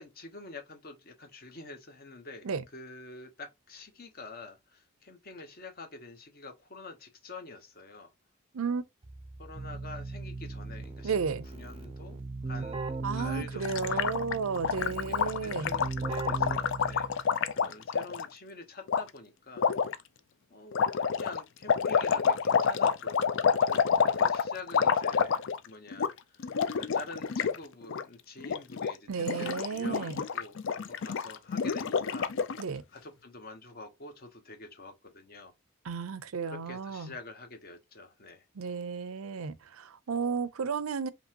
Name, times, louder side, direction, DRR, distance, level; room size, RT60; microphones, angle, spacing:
voice 1, 0.0-8.1 9.4-11.2 11.5-14.1 15.1-19.7 20.5-20.9 21.2-35.5 36.4-38.4, left 3 dB, 45° left, 0.9 m, -47 dB
Keyboard (musical), 9.0-17.3, right 3 dB, 25° right, 0.5 m, -38 dB
voice 2, 11.0-11.4 13.0-15.7 29.1-30.2 32.6-32.8 35.9-37.1 38.6-41.1, right 5 dB, 75° right, 0.5 m, -33 dB
Gurgling, 13.6-18.3 18.9-19.0 19.6-20.0 20.7-25.7 25.9-26.1 26.4-27.6 27.8-28.0 28.4-28.9 29.2-32.6, left 6 dB, 60° left, 0.4 m, -28 dB
5.2 x 2.9 x 2.8 m
head